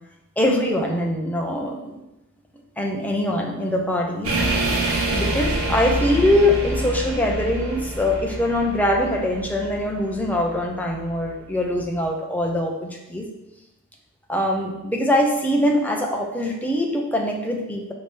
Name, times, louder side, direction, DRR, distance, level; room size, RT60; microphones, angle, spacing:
voice 1, 0.4-2.0 2.8-4.3 5.1-13.2 14.3-17.9, left 1 dB, 5° left, 0 dB, 0.8 m, -23 dB
sound 1, 4.2-11.3 11.5-12.0, right 1 dB, 70° right, 1.3 m, -27 dB
5.8 x 4.9 x 3.4 m, 0.93 s
head